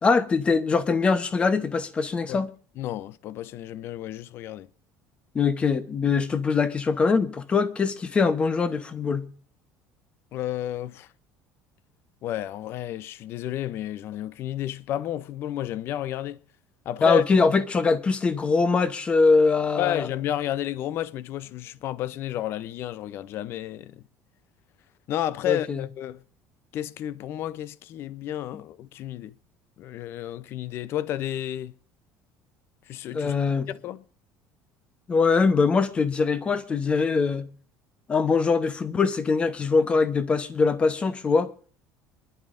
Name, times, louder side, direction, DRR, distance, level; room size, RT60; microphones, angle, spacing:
voice 1, 0.0-2.5 5.3-9.3 17.0-20.1 25.5-25.8 33.1-33.7 35.1-37.5 38.1-41.5, left 4 dB, 20° left, 0.8 m, -22 dB
voice 2, 2.8-4.7 10.3-11.1 12.2-16.4 16.9-17.5 19.8-24.0 25.1-26.2 26.7-29.3 29.8-31.7 32.9-33.3 33.7-34.0, left 12 dB, 45° left, 0.5 m, -31 dB
26.5 x 11.0 x 2.5 m
cardioid pair, 165°, 6 cm